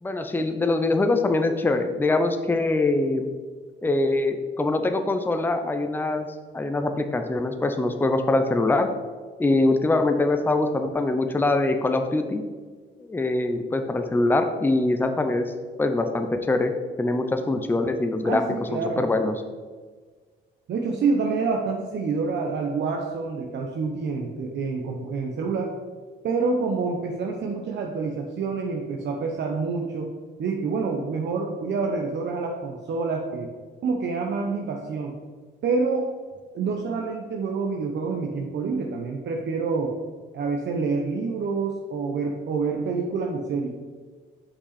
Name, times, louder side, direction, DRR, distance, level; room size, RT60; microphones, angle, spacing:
voice 1, 0.0-3.3 3.8-6.3 6.5-8.9 9.4-12.4 13.0-15.5 15.8-16.7 17.0-18.4 18.7-19.3, left 2 dB, 10° left, 6 dB, 0.5 m, -23 dB
voice 2, 18.2-19.1 20.7-25.7 26.2-30.1 30.4-33.5 33.8-35.1 35.6-36.1 36.5-39.9 40.3-43.7, right 4 dB, 60° right, 1 dB, 0.8 m, -27 dB
5.7 x 5.4 x 4.1 m, 1.5 s
cardioid pair, 90°, 20 cm